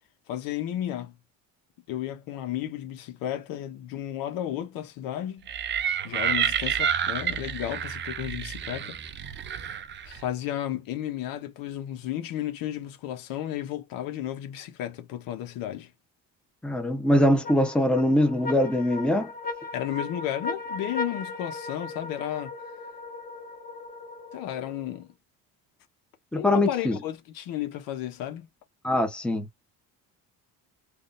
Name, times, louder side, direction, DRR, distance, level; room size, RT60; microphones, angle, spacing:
voice 1, 0.3-1.2 1.9-5.5 6.0-9.0 10.0-15.9 19.7-22.5 24.3-25.1 26.3-28.5, left 12 dB, 80° left, 1.1 m, -33 dB
sound 1, 5.5-10.3, right 8 dB, 35° right, 0.5 m, -29 dB
voice 2, 16.6-19.3 26.3-27.0 28.8-29.5, left 1 dB, 5° left, 0.8 m, -22 dB
sound 2, 17.4-25.0, left 3 dB, 25° left, 1.3 m, -37 dB
3.7 x 2.5 x 2.5 m
cardioid pair, 150°, 34 cm